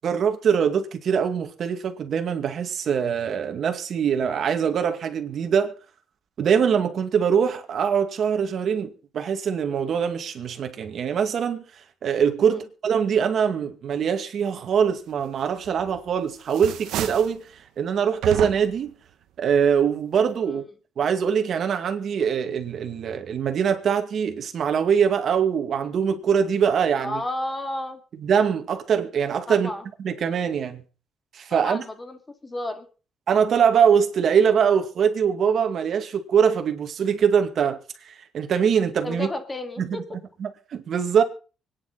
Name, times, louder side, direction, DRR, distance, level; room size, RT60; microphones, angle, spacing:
voice 1, 0.0-5.7 6.4-17.4 17.8-18.9 19.4-20.6 21.0-27.2 28.2-29.7 30.0-30.8 31.3-31.8 33.3-39.3 39.8-40.0 40.4-41.2, right 7 dB, 60° right, 2.2 m, -23 dB
sound 1, 15.6-16.1 16.4-17.4 18.2-18.9, right 12 dB, 85° right, 1.2 m, -31 dB
voice 2, 27.0-28.0 29.5-29.9 31.5-32.9 39.0-40.0, left 1 dB, 20° left, 2.7 m, -32 dB
24.5 x 10.0 x 4.1 m
cardioid pair, 90°, 0 cm